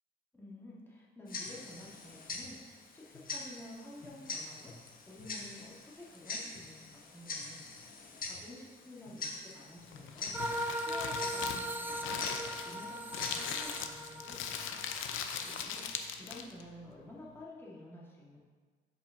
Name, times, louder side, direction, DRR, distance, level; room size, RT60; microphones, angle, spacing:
voice 1, 0.3-7.7 8.0-14.8 15.2-15.8 16.2-18.4, left 1 dB, 10° left, -6 dB, 2.1 m, -51 dB
Tick-tock, 1.3-13.6, left 3 dB, 45° left, 1.1 m, -44 dB
Crumpling crinkling, 9.8-16.6, left 7 dB, 85° left, 0.6 m, -40 dB
sound 1, 10.3-16.1, equal, 10° right, 0.5 m, -39 dB
5.5 x 5.4 x 5.9 m, 1.5 s
cardioid pair, 90°, 20 cm